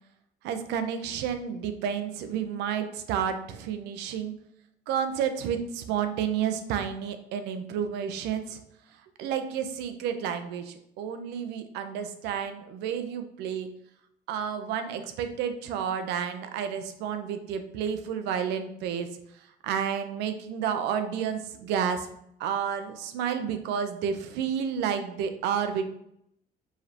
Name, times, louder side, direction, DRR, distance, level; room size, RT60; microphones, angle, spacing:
voice 1, 0.4-4.3 4.9-8.6 9.2-13.7 14.3-19.1 19.3-22.1 22.4-25.8, right 8 dB, 90° right, 8 dB, 0.6 m, -30 dB
4.7 x 3.3 x 2.8 m, 0.74 s
cardioid pair, 110°, 17 cm